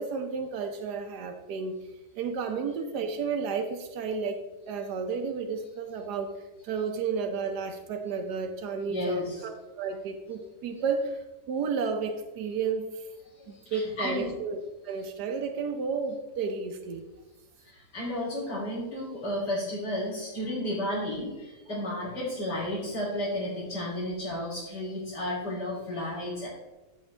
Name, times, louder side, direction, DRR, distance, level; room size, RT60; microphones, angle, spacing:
voice 1, 0.0-1.8 2.1-4.4 4.7-13.1 13.5-17.0 21.7-21.8, right 5 dB, 80° right, 4 dB, 1.4 m, -32 dB
voice 2, 8.9-9.4 13.4-14.3 17.6-26.5, left 1 dB, 85° left, -9 dB, 3.5 m, -33 dB
14.5 x 6.2 x 3.3 m, 1.1 s
omnidirectional pair, 1.7 m